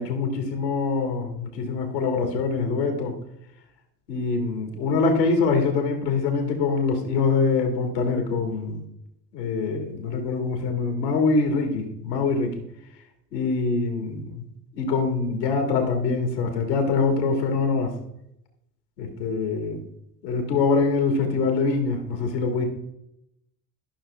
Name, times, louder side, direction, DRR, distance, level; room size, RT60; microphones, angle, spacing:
voice 1, 0.0-3.2 4.1-8.8 9.3-12.6 13.3-14.5 14.7-17.9 19.0-19.8 20.2-22.6, left 4 dB, 80° left, 5 dB, 2.0 m, -24 dB
12.5 x 6.1 x 3.4 m, 0.82 s
hypercardioid pair, 60°, 49 cm